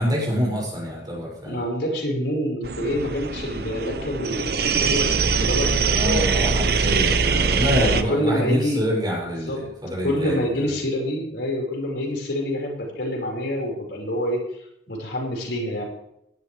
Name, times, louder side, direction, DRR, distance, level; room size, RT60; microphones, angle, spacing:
voice 1, 0.0-1.6 5.3-5.4 5.9-10.4, equal, 25° right, -4 dB, 6.4 m, -26 dB
voice 2, 1.4-6.4 7.2-7.3 7.7-9.0 9.4-9.6 10.0-14.4 14.9-15.8, equal, 70° left, 0 dB, 4.9 m, -27 dB
sound 1, 2.6-8.0, right 5 dB, 55° right, 0.8 m, -22 dB
17.5 x 12.0 x 3.3 m, 0.78 s
head